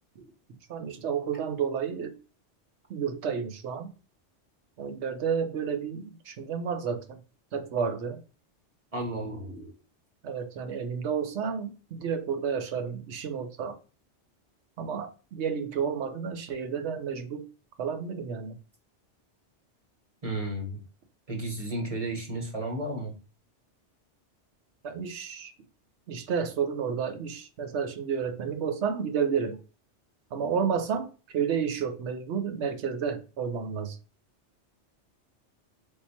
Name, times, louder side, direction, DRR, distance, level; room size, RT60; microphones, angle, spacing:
voice 1, 0.7-2.1 2.9-3.9 4.8-7.2 7.5-8.2 10.2-11.7 12.0-13.8 14.8-17.4 17.8-18.6 24.8-25.5 26.1-29.6 30.3-34.0, right 6 dB, 75° right, 9 dB, 1.0 m, -31 dB
voice 2, 8.9-9.7 20.2-20.8 21.3-23.1, right 1 dB, 30° right, -1 dB, 1.2 m, -33 dB
4.3 x 3.6 x 2.8 m, 0.34 s
omnidirectional pair, 1.2 m